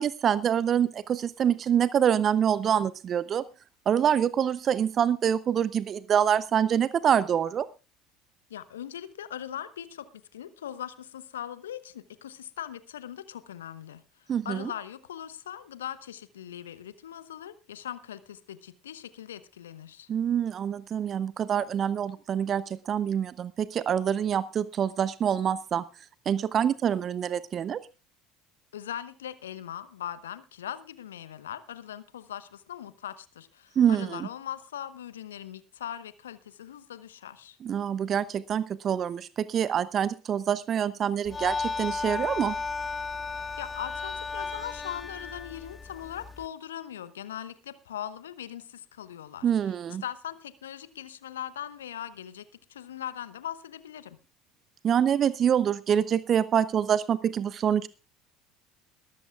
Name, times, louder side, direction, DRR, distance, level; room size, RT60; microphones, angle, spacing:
voice 1, 0.0-3.4 3.9-7.7 14.3-14.7 20.1-25.8 26.3-27.8 33.8-34.3 37.6-42.6 49.4-50.0 54.8-57.9, right 8 dB, 40° right, 17 dB, 0.7 m, -26 dB
voice 2, 8.5-20.1 28.7-37.6 43.3-49.4 49.9-52.4 52.7-54.2, left 10 dB, 75° left, 14 dB, 1.1 m, -40 dB
sound 1, 41.2-46.5, left 4 dB, 25° left, 0.7 m, -34 dB
21.0 x 13.0 x 2.4 m, 0.31 s
figure-of-eight pair, 65°, 0 cm